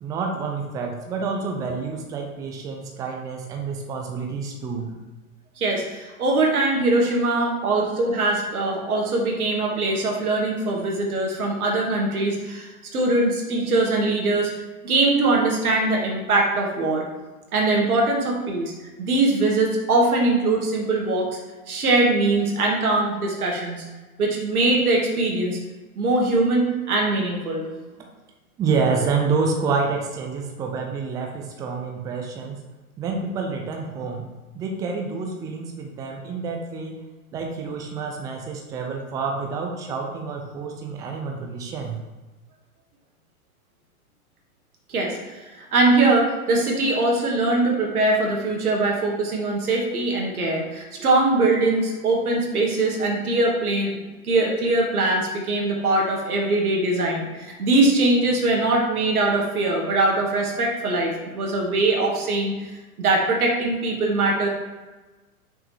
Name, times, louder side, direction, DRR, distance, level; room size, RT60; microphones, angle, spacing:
voice 1, 0.0-4.9 28.6-32.7 33.0-34.3 34.5-36.9 37.3-42.0, right 4 dB, 10° right, 2 dB, 0.4 m, -28 dB
voice 2, 5.6-14.5 14.8-17.1 17.5-21.4 21.7-23.8 24.2-25.6 26.0-27.7 44.9-53.9 54.2-62.7 63.0-64.5, right 2 dB, 75° right, -1 dB, 1.7 m, -22 dB
6.1 x 5.0 x 3.1 m, 1.2 s
hypercardioid pair, 105°, 45 cm